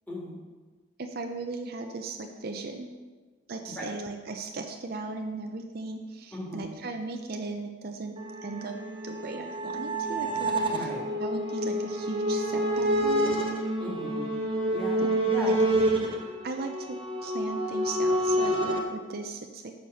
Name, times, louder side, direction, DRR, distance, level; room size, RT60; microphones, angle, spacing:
voice 1, 0.1-0.4 3.8-3.9 6.3-6.7 10.7-11.1 13.8-14.3 14.7-15.6, equal, 10° left, -4 dB, 2.0 m, -37 dB
voice 2, 1.0-2.9 3.5-8.2 8.4-8.8 9.0-10.9 11.2-13.4 15.5-15.6 16.4-19.7, right 3 dB, 50° right, 4 dB, 0.6 m, -37 dB
sound 1, 8.2-18.8, right 1 dB, 25° right, 1.1 m, -28 dB
7.3 x 6.4 x 5.5 m, 1.4 s
head